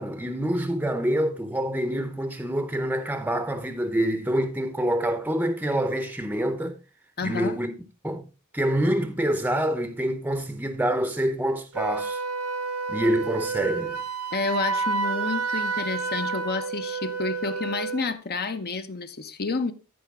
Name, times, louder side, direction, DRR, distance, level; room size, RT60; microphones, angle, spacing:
voice 1, 0.0-6.8 7.2-7.7 8.0-8.2 8.5-12.2 12.9-14.0, right 1 dB, 10° right, 0.7 m, -26 dB
voice 2, 7.2-7.6 14.3-19.7, left 4 dB, 45° left, 0.8 m, -30 dB
Wind instrument woodwind instrument, 11.7-18.1, right 4 dB, 75° right, 1.0 m, -29 dB
13.5 x 4.9 x 3.6 m
head